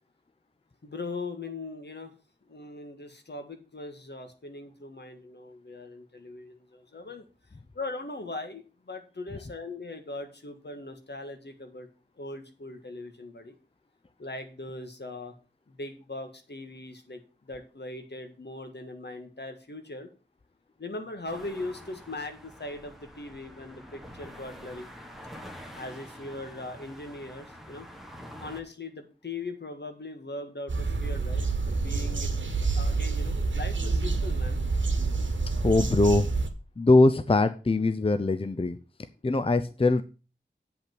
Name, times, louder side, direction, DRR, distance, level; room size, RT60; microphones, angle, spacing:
voice 1, 0.8-2.1 2.5-7.3 7.7-11.9 12.2-13.5 14.2-15.3 15.7-20.1 20.8-24.9 25.7-27.9 28.4-32.3 32.7-34.6, left 2 dB, 65° left, 6 dB, 1.8 m, -40 dB
sound 1, 21.3-28.6, equal, ahead, 1.7 m, -46 dB
sound 2, 30.7-36.5, right 3 dB, 80° right, 1.3 m, -28 dB
voice 2, 35.6-36.3 36.8-38.8 39.2-40.0, left 2 dB, 30° left, 11 dB, 0.5 m, -22 dB
8.7 x 5.5 x 6.0 m, 0.34 s
wide cardioid pair, 60°, 19 cm